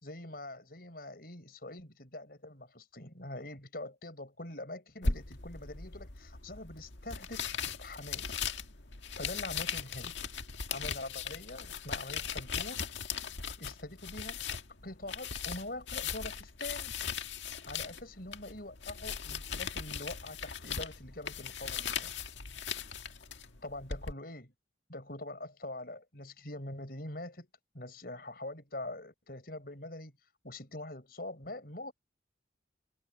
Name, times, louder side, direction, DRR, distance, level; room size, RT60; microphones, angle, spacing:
voice 1, 0.0-8.5 9.2-10.1 10.7-12.9 13.6-14.5 14.8-16.9 17.6-22.1 23.6-24.5 24.9-27.5 27.7-30.1 30.4-31.9, left 1 dB, 55° left, 6.1 m, -44 dB
sound 1, 5.0-24.1, left 6 dB, 85° left, 1.8 m, -38 dB
head